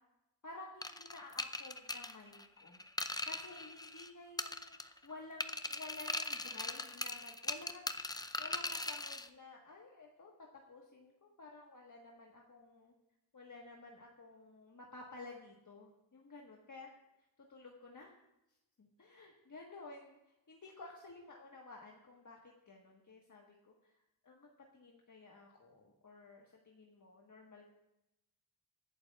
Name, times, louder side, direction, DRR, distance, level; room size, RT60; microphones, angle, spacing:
voice 1, 0.4-2.8 3.2-7.9 8.4-12.9 13.3-16.9 17.5-18.1 18.8-22.4 22.6-23.9 24.2-24.5 24.7-27.7, left 3 dB, 40° left, -1 dB, 1.5 m, -53 dB
sound 1, 0.8-4.1 4.4-5.1 5.4-9.3, left 2 dB, 10° left, 0.5 m, -40 dB
24.5 x 11.5 x 2.4 m, 0.92 s
wide cardioid pair, 100°, 46 cm